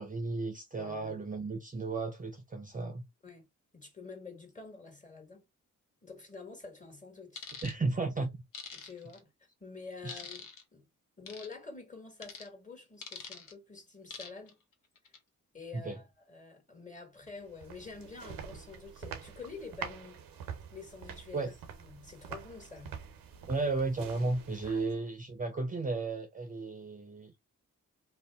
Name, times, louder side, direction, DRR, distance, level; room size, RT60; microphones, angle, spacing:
voice 1, 0.0-3.0 7.6-8.4 10.0-10.2 15.7-16.0 21.3-21.5 23.5-27.3, right 3 dB, 25° right, 0.6 m, -34 dB
voice 2, 0.7-1.1 3.2-3.4 3.7-5.4 6.0-7.5 8.7-9.3 9.6-10.9 11.2-14.6 15.5-20.2 20.7-21.4 21.8-23.0 24.6-24.8, left 4 dB, 20° left, 1.4 m, -48 dB
sound 1, 7.4-7.7 8.5-9.2 10.1-10.6 11.3-11.5 12.2-12.5 13.0-13.5 14.1-14.5 15.0-15.2, left 6 dB, 65° left, 0.7 m, -44 dB
sound 2, 17.3-25.1, right 7 dB, 90° right, 0.6 m, -46 dB
2.6 x 2.1 x 3.3 m
supercardioid pair, 50°, 34 cm